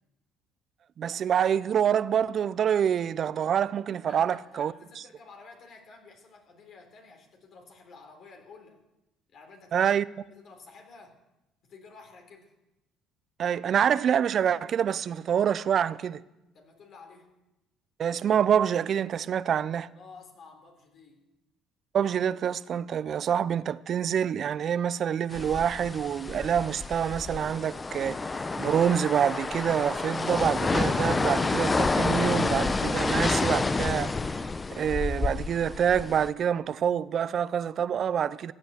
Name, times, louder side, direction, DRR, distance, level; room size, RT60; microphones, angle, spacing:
voice 1, 1.0-4.7 9.7-10.0 13.4-16.2 18.0-19.9 21.9-28.2 28.6-34.1 34.8-38.5, right 8 dB, 55° right, 0.6 m, -26 dB
voice 2, 4.0-8.8 9.3-10.0 10.3-11.2 11.6-12.5 16.5-17.3 20.0-21.3, left 4 dB, 60° left, 3.6 m, -51 dB
sound 1, 25.3-36.3, left 3 dB, 25° left, 0.7 m, -29 dB
15.0 x 8.8 x 8.1 m
supercardioid pair, 75°, 0 cm